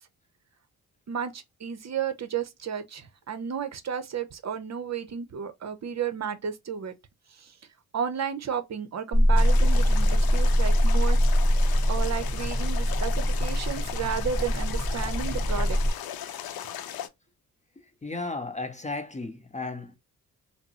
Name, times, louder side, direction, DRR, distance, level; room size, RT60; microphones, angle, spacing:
voice 1, 1.1-6.9 7.3-7.6 7.9-11.2 11.9-16.0, right 7 dB, 45° right, 0.7 m, -33 dB
sound 1, 9.1-15.9, equal, 20° right, 1.4 m, -23 dB
sound 2, 9.4-17.1, left 10 dB, 70° left, 0.6 m, -38 dB
voice 2, 18.0-20.0, left 3 dB, 20° left, 0.6 m, -34 dB
3.6 x 2.0 x 2.8 m
cardioid pair, 75°, 37 cm